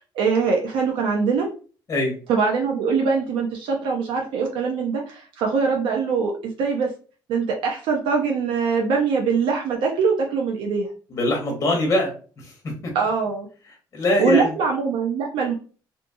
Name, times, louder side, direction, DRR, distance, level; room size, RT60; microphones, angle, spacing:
voice 1, 0.2-1.5 2.3-6.9 7.3-10.9 12.9-13.5 14.2-15.5, right 5 dB, 85° right, 1 dB, 0.5 m, -22 dB
voice 2, 11.1-12.5 12.8-12.9 13.9-14.5, left 1 dB, 35° left, 1 dB, 0.9 m, -22 dB
2.6 x 2.3 x 2.6 m, 0.38 s
cardioid pair, 140°, 8 cm